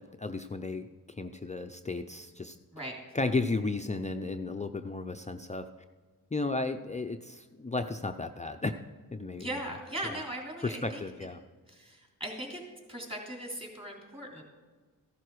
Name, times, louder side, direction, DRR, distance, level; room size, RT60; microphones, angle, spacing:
voice 1, 0.0-2.6 3.1-5.7 6.3-8.8 9.1-9.6 10.1-10.2 10.6-11.4, left 3 dB, 20° left, 6 dB, 0.5 m, -34 dB
voice 2, 9.3-11.0 11.7-12.6 12.9-14.4, right 1 dB, 15° right, 0 dB, 3.2 m, -39 dB
15.0 x 11.0 x 4.8 m, 1.4 s
cardioid pair, 90°, 35 cm